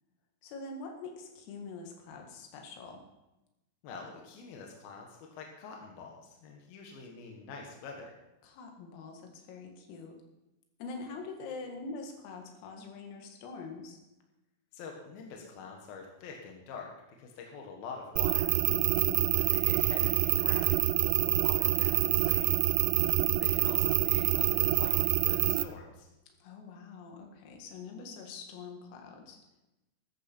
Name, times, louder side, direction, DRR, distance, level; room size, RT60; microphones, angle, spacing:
voice 1, 0.4-3.0 8.4-10.2 10.8-14.0 18.7-19.4 22.9-23.4 26.4-29.4, left 4 dB, 90° left, 2 dB, 4.5 m, -44 dB
voice 2, 3.8-8.1 14.7-18.5 19.3-22.6 23.4-26.1, left 5 dB, 65° left, 1 dB, 2.7 m, -46 dB
sound 1, 18.2-25.6, right 17 dB, 90° right, 3.3 m, -26 dB
14.0 x 13.5 x 4.5 m, 0.95 s
omnidirectional pair, 5.8 m